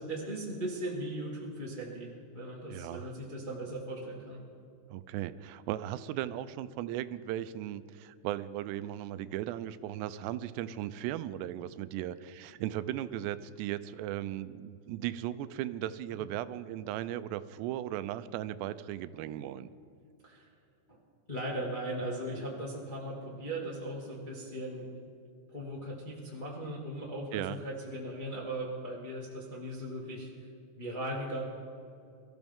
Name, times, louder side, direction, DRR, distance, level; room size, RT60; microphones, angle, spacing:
voice 1, 0.0-4.4 20.2-20.5 20.9-21.0 21.3-24.9 25.5-30.3 30.8-31.4, right 1 dB, 25° left, -4 dB, 1.0 m, -38 dB
voice 2, 2.7-3.1 4.9-19.7 27.3-27.6, right 12 dB, 85° right, 14 dB, 2.7 m, -37 dB
23.5 x 14.5 x 3.6 m, 2.5 s
omnidirectional pair, 4.9 m